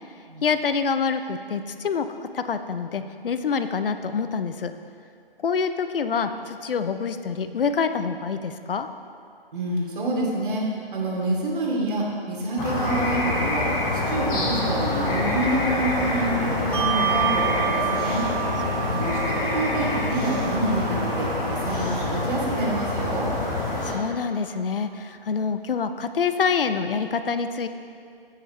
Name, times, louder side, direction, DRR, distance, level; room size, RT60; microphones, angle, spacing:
voice 1, 0.4-4.7 5.4-8.9 18.9-19.4 23.8-27.7, left 5 dB, 65° left, 10 dB, 0.7 m, -26 dB
voice 2, 9.5-10.6 10.9-13.7 14.1-18.3 19.0-23.3, right 1 dB, 60° right, -3 dB, 2.6 m, -27 dB
sound 1, 12.6-23.9, left 2 dB, 15° left, 1.1 m, -26 dB
Bell, 16.7-23.6, right 12 dB, 25° right, 0.4 m, -31 dB
16.0 x 6.6 x 3.2 m, 2.3 s
figure-of-eight pair, 145°, 30 cm